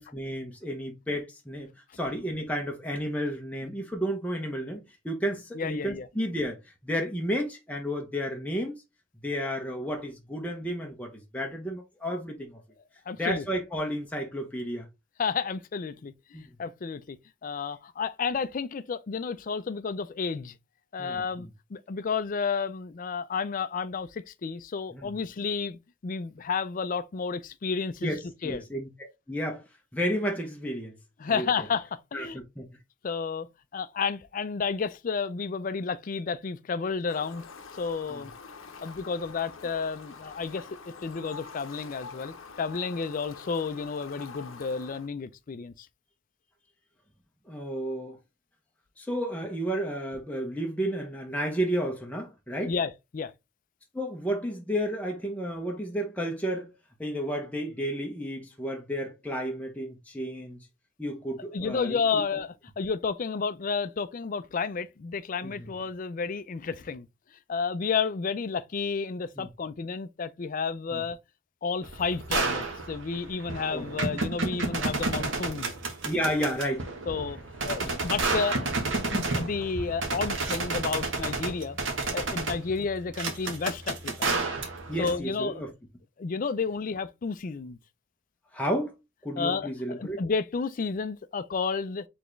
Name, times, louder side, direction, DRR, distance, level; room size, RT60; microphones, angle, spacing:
voice 1, 0.0-6.6 6.8-8.8 9.2-12.6 13.2-14.9 16.3-16.4 21.0-21.5 24.9-25.2 28.0-28.9 29.3-29.6 29.9-31.0 31.3-31.7 32.1-32.7 38.1-38.2 47.5-48.2 49.0-52.7 53.9-56.7 57.0-60.7 61.0-62.2 65.4-65.7 69.4-69.5 70.9-71.0 73.7-73.9 76.0-76.9 77.8-78.0 82.5-82.6 84.9-85.7 88.5-88.9 89.2-90.2, equal, 5° left, 0.7 m, -32 dB
voice 2, 5.5-6.1 13.1-13.4 15.2-17.2 17.4-20.6 20.9-28.1 28.4-28.6 31.2-32.4 33.0-33.5 33.7-37.5 37.8-38.3 38.8-40.7 41.0-45.9 52.7-53.3 61.5-67.1 67.5-71.2 71.6-75.7 77.1-77.4 77.6-78.7 79.0-81.8 82.1-84.3 85.0-85.6 86.2-87.8 89.4-92.1, left 5 dB, 40° left, 0.4 m, -31 dB
Fowl, 37.1-45.1, left 5 dB, 75° left, 0.7 m, -46 dB
sound 1, 71.8-85.2, right 3 dB, 65° right, 1.1 m, -31 dB
4.2 x 3.4 x 3.1 m
head